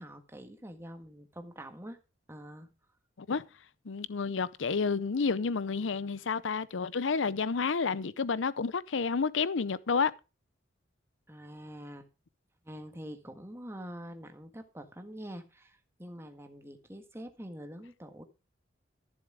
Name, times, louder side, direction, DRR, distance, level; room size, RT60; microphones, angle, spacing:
voice 1, 0.0-2.0 2.3-2.7 11.3-12.1 12.6-18.2, equal, 15° right, 1.6 m, -45 dB
voice 2, 3.9-10.1, left 5 dB, 85° left, 0.6 m, -30 dB
14.0 x 7.3 x 5.0 m
head